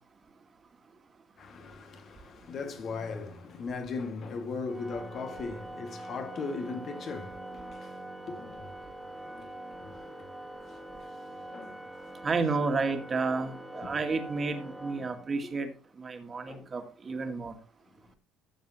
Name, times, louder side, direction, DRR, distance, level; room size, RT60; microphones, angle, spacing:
voice 1, 1.4-8.0 8.3-8.9 9.2-10.2 10.7-11.9 13.7-13.9 15.0-15.1 16.5-16.7, left 4 dB, 50° left, 2.1 m, -39 dB
Organ, 4.7-15.6, right 1 dB, 5° right, 2.2 m, -44 dB
voice 2, 12.2-15.7 16.0-17.5, right 4 dB, 35° right, 2.2 m, -31 dB
14.0 x 7.2 x 3.0 m
hypercardioid pair, 60°, 0 cm